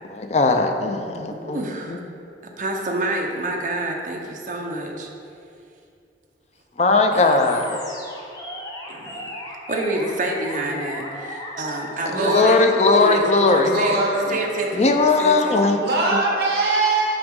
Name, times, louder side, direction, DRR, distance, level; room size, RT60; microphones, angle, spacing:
voice 1, 0.1-1.6 1.9-2.0 6.8-7.7 12.3-13.8 14.7-15.9, left 3 dB, 40° left, 5 dB, 0.5 m, -18 dB
voice 2, 1.3-2.0 2.6-5.1 7.1-7.4 8.9-9.2 9.7-12.6 12.9-14.0 14.3-15.5, right 1 dB, 45° right, 1 dB, 0.7 m, -28 dB
Animal, 7.4-15.3, left 1 dB, 20° left, 0.9 m, -37 dB
voice 3, 12.1-12.7 13.6-14.4 15.8-17.2, right 2 dB, 60° right, -3 dB, 1.3 m, -22 dB
7.8 x 5.1 x 3.7 m, 2.5 s
head